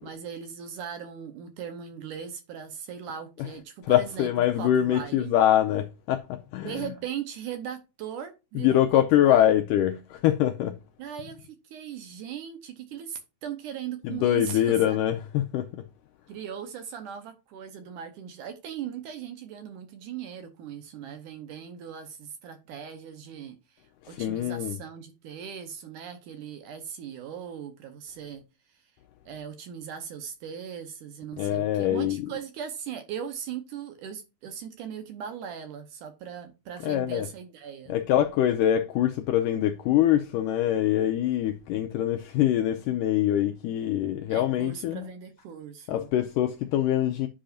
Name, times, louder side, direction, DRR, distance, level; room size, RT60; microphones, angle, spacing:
voice 1, 0.0-5.4 6.6-9.4 11.0-15.0 16.3-28.4 28.7-28.8 29.3-38.0 44.3-46.1, right 8 dB, 70° right, 2.1 m, -39 dB
voice 2, 3.9-6.9 8.6-10.8 14.0-15.7 24.1-24.8 31.4-32.3 36.8-37.3 37.9-45.1 45.9-47.3, left 11 dB, 85° left, 1.9 m, -24 dB
10.0 x 5.6 x 2.5 m
omnidirectional pair, 4.4 m